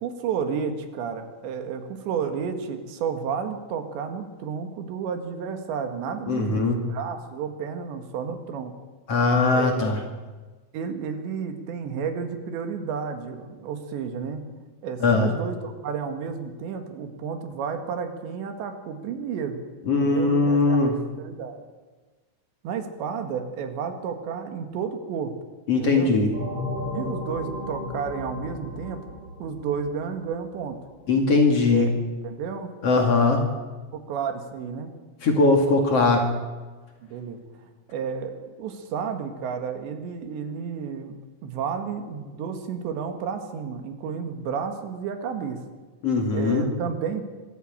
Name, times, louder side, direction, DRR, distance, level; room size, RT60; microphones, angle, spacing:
voice 1, 0.0-8.7 9.5-9.9 10.7-14.4 14.8-19.6 20.0-21.6 22.6-25.4 25.8-26.1 26.9-29.0 29.4-30.8 31.7-31.9 32.2-32.7 33.9-34.9 37.0-37.4 37.9-41.2 41.4-45.6 46.3-47.2, right 6 dB, 90° right, 6 dB, 4.2 m, -31 dB
voice 2, 6.3-6.8 9.1-10.0 15.0-15.3 19.9-21.0 25.7-26.3 31.1-31.9 32.8-33.4 35.2-36.3 46.0-46.6, left 3 dB, 40° left, 2 dB, 2.7 m, -20 dB
sound 1, 26.3-30.7, left 2 dB, 30° right, 2.9 m, -34 dB
23.5 x 14.0 x 8.9 m, 1.3 s
omnidirectional pair, 4.9 m